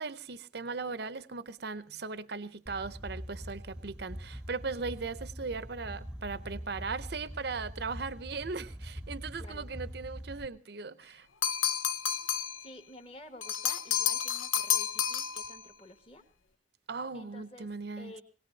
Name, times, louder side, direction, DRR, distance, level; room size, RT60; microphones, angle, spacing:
voice 1, 0.0-11.3 16.9-18.1, right 4 dB, 55° right, 0.7 m, -38 dB
sound 1, 2.7-10.5, equal, 5° right, 0.7 m, -43 dB
voice 2, 9.4-9.7 12.6-16.2 17.1-17.7 18.0-18.2, left 1 dB, 30° left, 1.7 m, -50 dB
sound 2, 11.4-12.6 13.4-15.6, left 9 dB, 90° left, 0.8 m, -30 dB
22.0 x 18.0 x 2.8 m
head